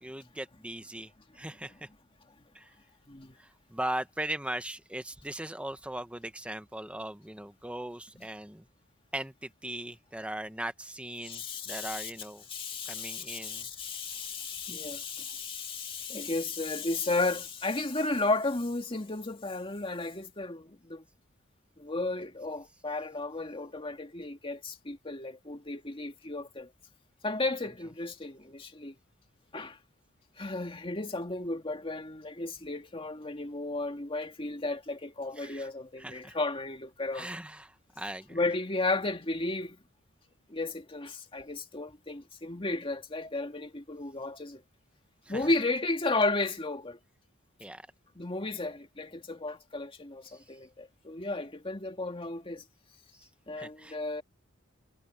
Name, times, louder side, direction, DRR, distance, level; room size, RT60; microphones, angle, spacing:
voice 1, 0.0-1.9 2.5-2.7 3.4-8.7 9.1-12.5 12.9-13.7 15.7-16.1 35.4-35.7 36.0-36.4 37.1-38.4 45.2-45.5 47.6-47.9 50.3-50.5 53.1-53.3 53.6-54.0, right 1 dB, 5° right, 1.0 m, -39 dB
voice 2, 11.2-12.1 12.5-21.0 21.8-26.7 27.2-28.9 29.5-29.8 30.4-37.3 38.3-39.8 40.5-44.6 45.3-47.0 48.2-52.6 53.5-54.2, left 2 dB, 25° left, 2.0 m, -34 dB
head